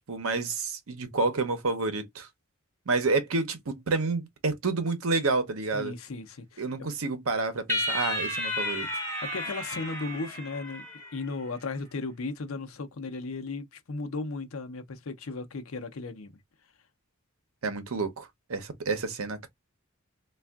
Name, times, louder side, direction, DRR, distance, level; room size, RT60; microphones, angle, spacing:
voice 1, 0.0-2.3 2.9-6.0 6.6-8.9 17.6-19.5, right 3 dB, 85° right, 0.8 m, -29 dB
voice 2, 5.7-6.9 9.2-16.3, left 3 dB, 80° left, 0.7 m, -36 dB
sound 1, 7.7-11.2, left 1 dB, 10° left, 1.9 m, -32 dB
3.4 x 2.4 x 2.3 m
head